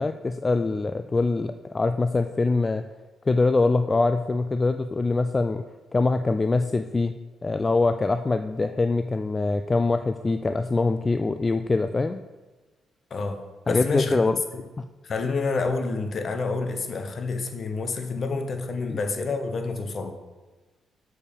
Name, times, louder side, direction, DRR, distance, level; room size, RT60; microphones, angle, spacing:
voice 1, 0.0-2.9 3.3-5.6 5.9-7.1 7.4-12.2 13.7-14.4 18.9-19.0, left 3 dB, 25° left, 9 dB, 0.3 m, -23 dB
voice 2, 13.1-14.2 15.0-20.2, left 4 dB, 50° left, 6 dB, 1.0 m, -28 dB
6.4 x 5.4 x 6.9 m, 1.2 s
cardioid pair, 90°, 0 cm